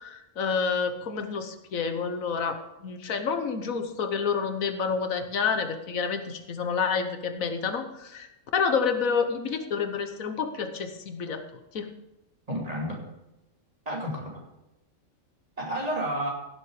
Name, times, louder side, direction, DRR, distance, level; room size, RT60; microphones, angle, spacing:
voice 1, 0.0-11.4 11.7-11.9, left 5 dB, 80° left, 8 dB, 1.5 m, -29 dB
voice 2, 12.5-13.0 13.9-14.4 15.6-16.3, right 1 dB, 30° right, -1 dB, 2.8 m, -31 dB
16.0 x 7.4 x 4.9 m, 0.93 s
omnidirectional pair, 1.4 m